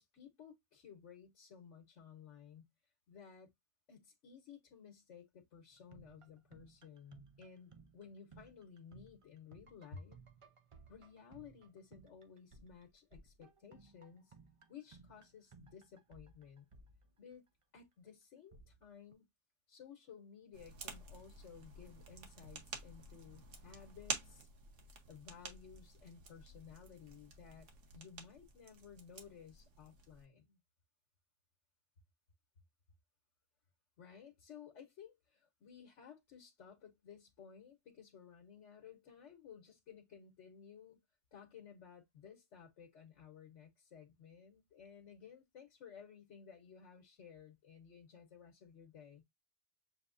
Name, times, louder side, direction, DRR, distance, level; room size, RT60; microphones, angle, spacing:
voice 1, 0.0-2.7 3.1-3.5 3.9-10.2 10.9-14.3 14.7-16.7 17.2-17.4 17.7-19.3 19.7-24.5 25.1-27.7 27.9-30.6 34.0-41.0 41.3-49.2, left 7 dB, 85° left, 1.3 m, -56 dB
sound 1, 5.7-17.6 18.5-19.1, right 4 dB, 35° right, 0.6 m, -62 dB
sound 2, 20.5-30.2, right 4 dB, 90° right, 1.4 m, -50 dB
6.8 x 2.7 x 2.5 m
omnidirectional pair, 1.2 m